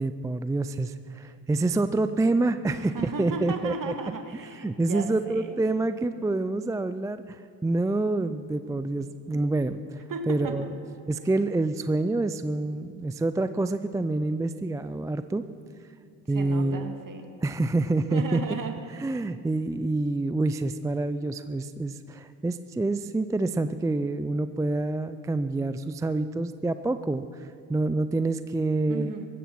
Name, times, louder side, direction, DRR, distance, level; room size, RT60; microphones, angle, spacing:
voice 1, 0.0-3.9 4.3-10.7 11.1-15.4 16.3-16.9 17.4-18.4 19.0-29.1, right 2 dB, 10° right, 11 dB, 0.3 m, -27 dB
voice 2, 2.7-5.7 10.1-10.6 16.3-17.3 18.1-18.8 28.9-29.3, right 3 dB, 40° right, 6 dB, 1.9 m, -35 dB
16.0 x 13.5 x 6.0 m, 2.4 s
supercardioid pair, 65°, 48 cm